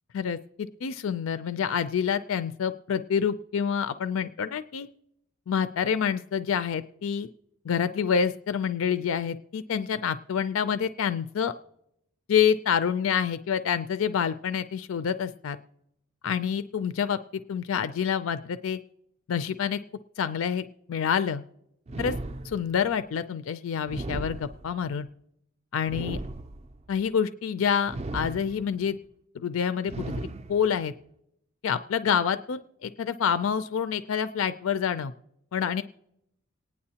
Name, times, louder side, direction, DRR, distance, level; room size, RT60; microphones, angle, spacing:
voice 1, 0.1-4.9 5.5-7.3 7.6-11.5 12.3-15.6 16.2-17.2 17.5-18.8 19.3-19.8 20.2-21.4 22.0-22.1 22.4-25.1 25.7-26.2 26.9-29.0 29.3-30.1 30.5-30.9 31.6-35.1 35.5-35.8, left 7 dB, 70° left, 12 dB, 0.4 m, -27 dB
sound 1, 21.9-22.9 23.9-24.9 25.9-26.9 27.9-28.9 29.9-30.9, right 2 dB, 30° right, 0.4 m, -36 dB
27.0 x 9.6 x 2.8 m, 0.78 s
head